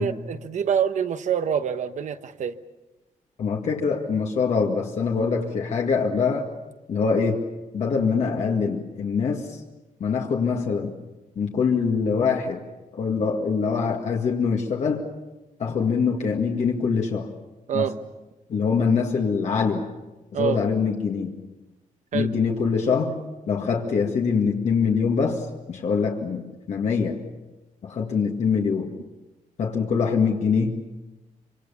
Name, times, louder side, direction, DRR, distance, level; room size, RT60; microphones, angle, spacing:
voice 1, 0.0-2.6 17.7-18.0 20.3-20.6 22.1-22.3, right 8 dB, 60° right, 10 dB, 1.1 m, -26 dB
voice 2, 3.4-6.5 6.9-7.4 7.7-9.6 10.0-10.9 11.4-12.6 12.9-15.1 15.6-17.3 17.7-17.9 18.5-19.9 20.3-21.4 22.1-23.1 23.5-26.4 26.7-27.2 27.8-28.9 29.6-31.0, left 5 dB, 55° left, 0 dB, 2.0 m, -24 dB
26.0 x 25.5 x 7.0 m, 1.1 s
wide cardioid pair, 175°, 14 cm